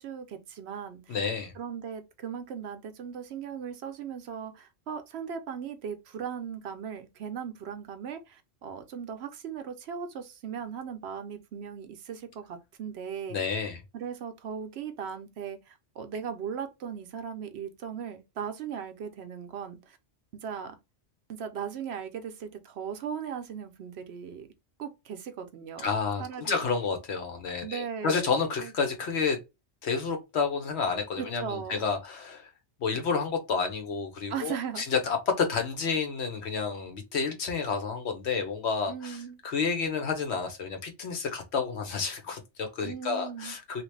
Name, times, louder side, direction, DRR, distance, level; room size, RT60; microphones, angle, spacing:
voice 1, 0.0-1.2 1.5-13.6 13.9-20.0 20.4-20.8 21.3-24.5 24.8-25.9 26.2-26.6 27.6-28.7 31.2-31.9 34.3-34.9 38.9-39.4 42.8-43.6, right 7 dB, 70° right, 0.8 m, -38 dB
voice 2, 1.1-1.5 13.3-13.8 25.8-29.4 29.8-32.5 32.8-43.8, left 5 dB, 70° left, 1.0 m, -30 dB
2.9 x 2.4 x 3.2 m
omnidirectional pair, 1.2 m